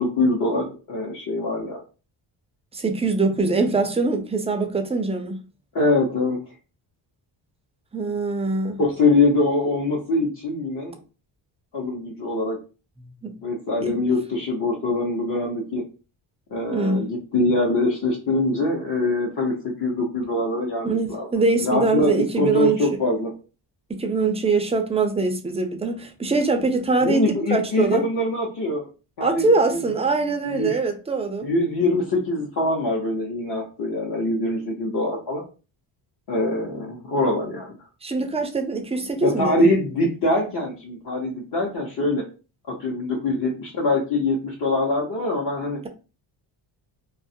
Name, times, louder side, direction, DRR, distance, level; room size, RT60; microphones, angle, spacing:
voice 1, 0.0-1.8 5.7-6.4 8.8-11.0 11.7-12.6 13.4-15.8 16.5-21.3 21.6-23.3 27.0-28.9 29.2-29.8 30.5-30.8 31.4-35.4 36.3-37.8 39.2-42.2 42.7-45.8, left 2 dB, 50° left, 0.8 m, -23 dB
voice 2, 2.7-5.4 7.9-8.8 13.2-13.4 13.8-14.0 16.7-17.0 20.8-22.8 23.9-28.0 29.2-31.5 38.0-39.7, right 3 dB, 15° right, 0.4 m, -23 dB
2.3 x 2.0 x 2.6 m
cardioid pair, 75°, 49 cm